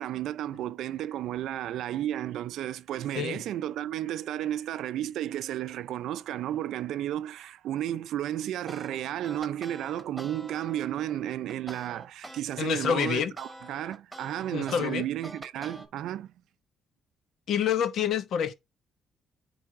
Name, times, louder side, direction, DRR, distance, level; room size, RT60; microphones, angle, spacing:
voice 1, 0.0-16.3, right 12 dB, 80° right, 0.4 m, -33 dB
sound 1, 8.7-12.4 12.8-15.9, right 1 dB, 10° right, 1.6 m, -45 dB
voice 2, 12.6-13.3 14.5-15.0 17.5-18.5, left 8 dB, 70° left, 0.8 m, -27 dB
9.8 x 3.4 x 3.6 m
cardioid pair, 90°, 0 cm